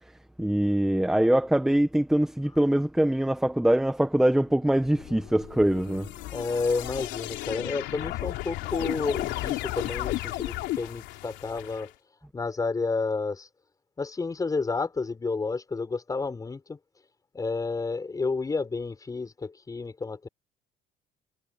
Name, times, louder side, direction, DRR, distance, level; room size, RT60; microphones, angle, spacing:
voice 1, 0.4-6.1, right 1 dB, 5° right, 1.0 m, -23 dB
sound 1, 4.8-11.9, left 17 dB, 85° left, 3.1 m, -34 dB
voice 2, 6.3-11.9 12.3-13.5 14.0-16.8 17.3-20.3, left 4 dB, 20° left, 6.1 m, -30 dB
cardioid pair, 135°, 18 cm